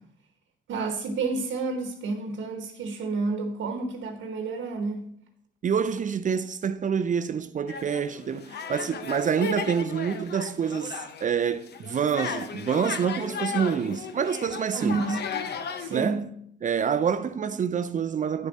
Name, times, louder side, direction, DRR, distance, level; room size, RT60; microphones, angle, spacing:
voice 1, 0.7-5.1 14.7-15.2 15.8-16.3, right 3 dB, 75° right, 1.2 m, -30 dB
voice 2, 5.6-15.0 15.9-16.2 16.6-18.5, right 7 dB, 40° right, 0.5 m, -27 dB
sound 1, 7.7-11.3 11.7-16.0, left 6 dB, 55° left, 0.9 m, -35 dB
9.9 x 7.1 x 4.1 m
cardioid pair, 90°, 20 cm